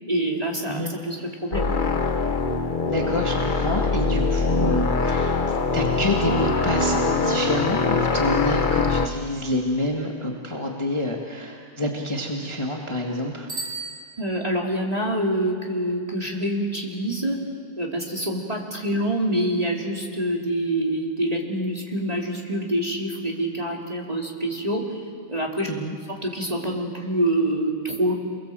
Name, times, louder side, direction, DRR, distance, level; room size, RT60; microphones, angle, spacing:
voice 1, 0.0-1.7 14.2-17.4 17.8-25.0 25.3-25.7 26.1-28.1, right 1 dB, 15° right, -1 dB, 3.0 m, -26 dB
sound 1, 1.5-9.1, left 4 dB, 50° left, 0.5 m, -23 dB
voice 2, 2.9-13.5 25.7-25.9, left 1 dB, 15° left, 0 dB, 1.8 m, -28 dB
Bicycle bell, 13.4-14.8, right 3 dB, 40° right, 6.0 m, -36 dB
29.0 x 22.5 x 7.7 m, 2.2 s
omnidirectional pair, 2.4 m